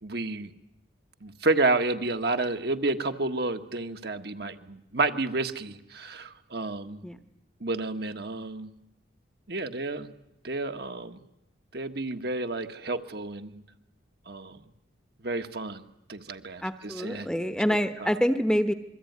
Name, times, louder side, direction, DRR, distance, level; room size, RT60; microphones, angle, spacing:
voice 1, 0.0-0.5 1.2-7.1 7.6-8.7 9.5-10.1 10.4-11.2 11.7-13.6 14.3-14.6 15.2-15.8 16.1-17.3 17.7-18.1, right 2 dB, 55° right, 7 dB, 1.5 m, -30 dB
voice 2, 16.6-18.7, equal, 5° left, 10 dB, 1.0 m, -26 dB
27.0 x 22.5 x 9.5 m, 0.89 s
head